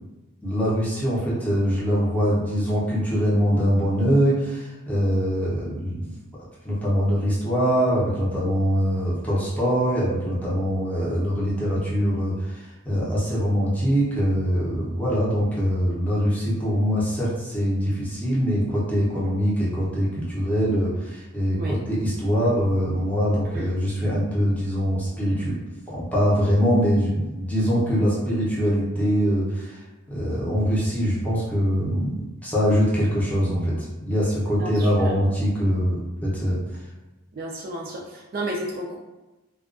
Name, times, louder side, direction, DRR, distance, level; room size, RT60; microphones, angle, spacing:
voice 1, 0.4-6.2 6.6-25.5 25.9-29.8 30.1-36.6, equal, 5° left, -8 dB, 0.6 m, -23 dB
voice 2, 34.6-35.2 37.3-39.0, right 1 dB, 45° right, -2 dB, 0.3 m, -32 dB
2.3 x 2.2 x 2.4 m, 1.1 s
head